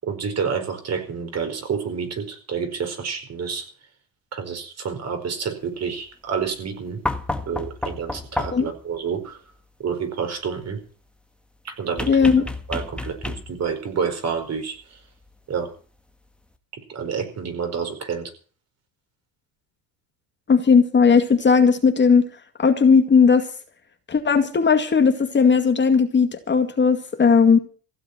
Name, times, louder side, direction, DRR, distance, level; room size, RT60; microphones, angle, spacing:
voice 1, 0.0-3.7 4.3-7.0 7.5-9.4 9.8-10.8 11.6-12.1 12.7-15.0 15.5-15.7 16.9-18.3, right 6 dB, 40° right, 6 dB, 4.9 m, -29 dB
sound 1, 7.1-8.8 12.0-13.7 15.3-15.4, left 1 dB, 5° left, 1.7 m, -30 dB
voice 2, 12.1-12.4 20.5-22.2 22.6-23.5 24.1-27.6, left 5 dB, 30° left, 6 dB, 2.2 m, -17 dB
16.0 x 7.4 x 9.6 m, 0.41 s
supercardioid pair, 90°, 39 cm